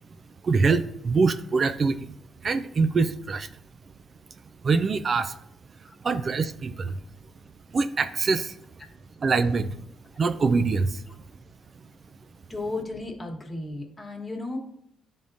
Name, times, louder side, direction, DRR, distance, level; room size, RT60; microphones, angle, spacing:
voice 1, 0.4-2.1 2.4-3.5 4.6-5.3 6.0-7.0 7.7-8.6 9.2-9.8 10.2-11.0, right 4 dB, 40° right, 10 dB, 0.3 m, -24 dB
voice 2, 12.5-14.6, left 2 dB, 20° left, 0 dB, 1.3 m, -34 dB
10.0 x 3.5 x 2.6 m, 0.73 s
cardioid pair, 90°, 0 cm